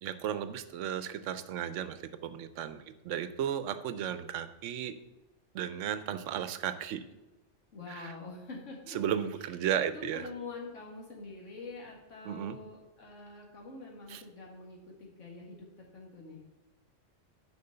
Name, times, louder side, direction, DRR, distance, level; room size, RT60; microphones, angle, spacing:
voice 1, 0.0-4.9 5.5-7.0 7.9-8.1 8.9-10.3 12.3-12.6 14.1-14.2, right 9 dB, 90° right, 13 dB, 0.9 m, -34 dB
voice 2, 7.7-9.2 9.7-16.4, left 3 dB, 90° left, -1 dB, 2.1 m, -46 dB
6.7 x 5.1 x 6.6 m, 1.0 s
omnidirectional pair, 1.2 m